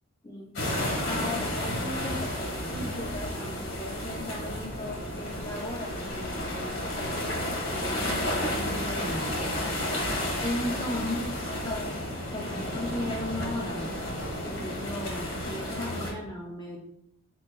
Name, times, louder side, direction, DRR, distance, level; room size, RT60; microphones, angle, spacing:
voice 1, 0.2-11.4 11.6-12.0 12.3-14.0 14.4-16.8, left 1 dB, 20° left, -1 dB, 0.6 m, -37 dB
sound 1, 0.5-16.1, left 1 dB, 80° left, 1.6 m, -32 dB
4.5 x 4.3 x 2.2 m, 0.75 s
head